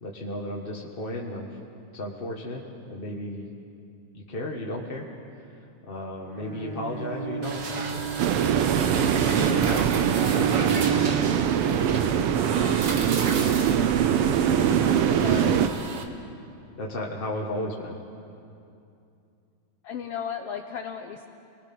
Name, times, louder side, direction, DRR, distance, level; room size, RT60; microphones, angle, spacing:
voice 1, 0.0-1.5 1.9-2.6 2.9-3.5 4.1-5.1 5.8-8.2 9.1-10.0 10.3-11.5 12.1-12.2 13.2-13.7 14.8-15.6 16.7-18.0, left 1 dB, 35° left, -1 dB, 0.8 m, -34 dB
Bowed string instrument, 6.3-11.6, right 7 dB, 35° right, 2.4 m, -32 dB
sound 1, 7.4-16.0, right 4 dB, 50° right, 1.5 m, -33 dB
sound 2, 8.2-15.7, right 9 dB, 80° right, 1.2 m, -23 dB
voice 2, 15.2-15.6 19.8-21.3, left 7 dB, 75° left, 5 dB, 1.4 m, -34 dB
28.5 x 20.5 x 6.1 m, 2.6 s
omnidirectional pair, 3.6 m